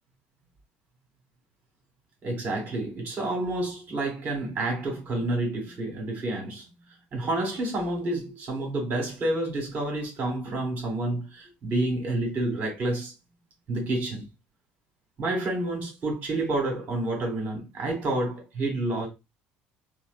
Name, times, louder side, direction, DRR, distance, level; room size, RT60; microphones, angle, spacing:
voice 1, 2.2-6.6 7.1-13.1 13.7-14.3 15.2-19.1, right 2 dB, 45° right, 1.2 m, -29 dB
2.5 x 2.0 x 2.4 m
supercardioid pair, 95°, 5 cm